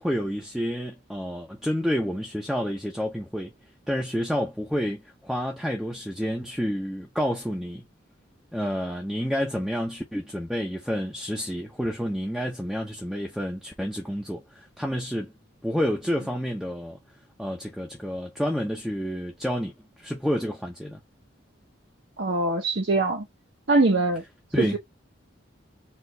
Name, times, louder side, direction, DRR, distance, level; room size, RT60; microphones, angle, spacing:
voice 1, 0.0-3.5 3.9-7.8 8.5-15.3 15.6-17.0 17.4-19.7 20.0-21.0 24.5-24.8, equal, ahead, 0.6 m, -29 dB
voice 2, 22.2-23.3 23.7-24.2 24.6-24.8, right 2 dB, 55° right, 0.8 m, -23 dB
4.4 x 2.5 x 3.2 m
head